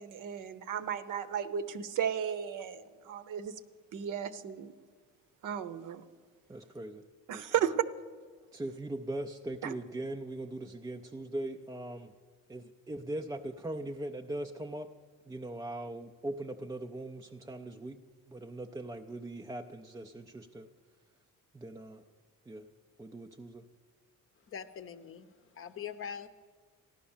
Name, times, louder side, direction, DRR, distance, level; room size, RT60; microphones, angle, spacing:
voice 1, 0.0-3.5 3.9-4.7 5.4-6.0 7.3-7.8 9.6-9.7, right 9 dB, 60° right, 13 dB, 0.8 m, -34 dB
voice 2, 6.5-7.0 7.3-7.7 8.5-12.1 12.5-14.9 15.3-18.0 18.3-20.7 21.5-22.0 22.5-22.7 23.0-23.7, right 1 dB, 10° right, 3 dB, 0.3 m, -40 dB
voice 3, 24.5-26.3, left 7 dB, 40° left, 10 dB, 0.7 m, -43 dB
14.5 x 11.0 x 7.1 m, 1.5 s
cardioid pair, 150°, 36 cm